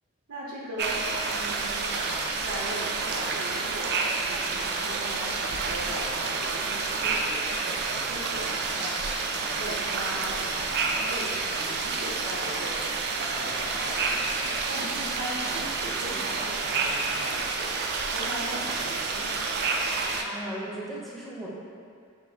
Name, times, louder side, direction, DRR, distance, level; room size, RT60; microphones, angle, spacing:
voice 1, 0.3-1.0 1.3-8.9 9.3-14.4 14.7-19.5, right 1 dB, 75° right, -6 dB, 0.7 m, -39 dB
sound 1, 0.8-20.2, right 4 dB, 50° right, 0.3 m, -29 dB
voice 2, 14.8-16.3 19.9-21.5, right 1 dB, ahead, -6 dB, 0.6 m, -40 dB
5.1 x 3.1 x 2.7 m, 2.3 s
head